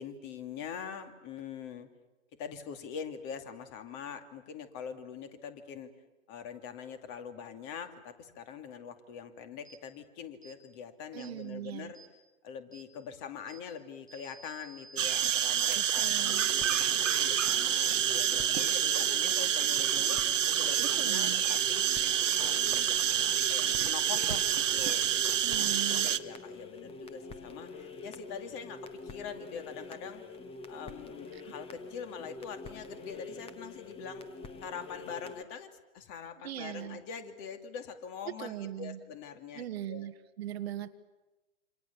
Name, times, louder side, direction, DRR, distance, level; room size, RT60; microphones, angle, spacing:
voice 1, 0.0-1.9 2.4-5.9 6.3-12.0 12.4-21.9 22.3-30.2 30.7-34.3 34.6-40.1, left 7 dB, 35° left, 8 dB, 2.5 m, -44 dB
sound 1, 9.6-9.8 10.4-10.6 11.2-11.3 11.9-12.1 12.7-12.9 13.5-13.6 14.1-19.1, right 2 dB, 90° left, 6.8 m, -52 dB
voice 2, 11.1-11.9 15.7-16.5 20.8-21.4 25.4-26.1 31.3-31.5 36.4-37.0 38.4-39.0 39.5-40.9, right 11 dB, 55° right, 10 dB, 1.4 m, -40 dB
sound 2, 15.0-26.2, right 9 dB, 70° right, 1.1 m, -28 dB
sound 3, 16.3-35.4, left 3 dB, 15° left, 1.5 m, -46 dB
27.5 x 26.0 x 7.0 m, 1.1 s
hypercardioid pair, 120°, 39 cm